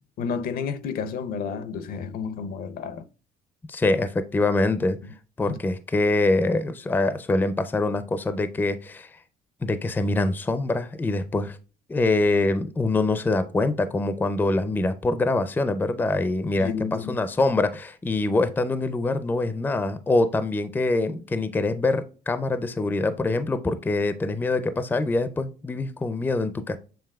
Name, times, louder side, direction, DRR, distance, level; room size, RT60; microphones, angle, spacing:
voice 1, 0.2-3.1 5.5-5.6 16.6-17.2, left 6 dB, 60° left, 0.5 m, -31 dB
voice 2, 3.7-5.0 5.4-9.1 9.6-11.6 11.9-16.7 17.1-26.8, left 2 dB, 10° left, 0.4 m, -24 dB
6.9 x 3.0 x 2.2 m
cardioid pair, 110°, 17 cm